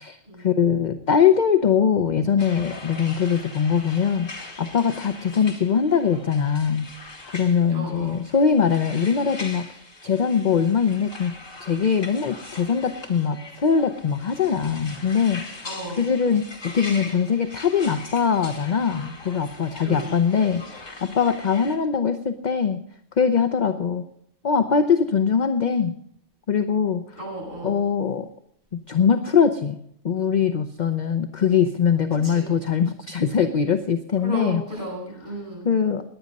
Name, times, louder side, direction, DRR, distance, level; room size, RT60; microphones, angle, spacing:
voice 1, 0.0-6.9 7.3-9.7 10.0-11.3 11.6-22.8 23.2-24.1 24.4-25.9 26.5-27.0 27.6-28.3 28.7-34.6 35.6-36.0, left 7 dB, 45° left, 9 dB, 0.8 m, -22 dB
sound 1, 2.4-21.8, left 2 dB, 90° left, 2.9 m, -41 dB
voice 2, 7.7-8.2 15.6-16.0 19.8-20.1 27.2-27.8 32.2-32.5 34.2-35.7, right 1 dB, 35° right, -5 dB, 8.2 m, -34 dB
18.0 x 10.5 x 5.3 m, 0.69 s
omnidirectional pair, 1.3 m